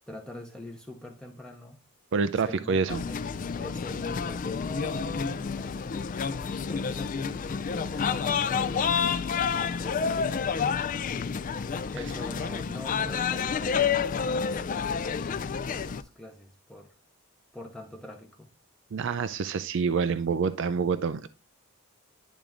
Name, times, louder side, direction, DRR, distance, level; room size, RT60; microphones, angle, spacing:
voice 1, 0.1-1.8 2.4-3.2 3.6-6.1 6.7-10.7 11.9-16.9 17.5-18.5, left 1 dB, 5° left, 0.7 m, -45 dB
voice 2, 2.1-3.0 18.9-21.3, right 5 dB, 55° right, 0.4 m, -27 dB
sound 1, 2.9-16.0, left 6 dB, 35° left, 0.4 m, -29 dB
10.5 x 3.7 x 3.4 m
head